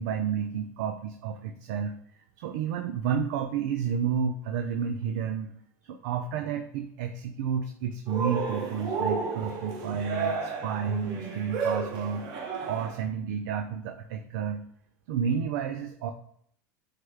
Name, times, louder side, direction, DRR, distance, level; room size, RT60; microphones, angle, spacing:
voice 1, 0.0-1.9 2.4-5.5 5.8-14.6 15.1-16.1, right 7 dB, 70° right, 6 dB, 0.4 m, -31 dB
Cheering, 8.1-13.0, right 5 dB, 50° right, 1.3 m, -32 dB
4.6 x 2.2 x 4.6 m, 0.65 s
hypercardioid pair, 90°, 10 cm